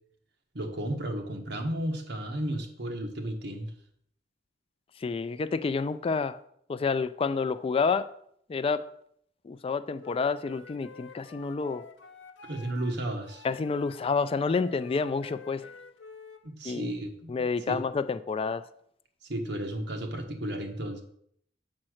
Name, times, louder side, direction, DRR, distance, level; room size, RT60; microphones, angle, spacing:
voice 1, 0.5-3.7 12.4-13.4 16.4-17.3 17.7-17.8 19.2-21.0, right 1 dB, 65° right, 1.3 m, -33 dB
voice 2, 5.0-6.4 6.7-8.1 8.5-8.8 9.4-11.8 13.4-15.7 16.6-16.9 17.3-18.6, left 4 dB, 30° left, 0.3 m, -29 dB
Wind instrument woodwind instrument, 10.0-12.9 13.2-16.4, left 5 dB, 80° left, 0.8 m, -49 dB
7.3 x 4.3 x 6.3 m
head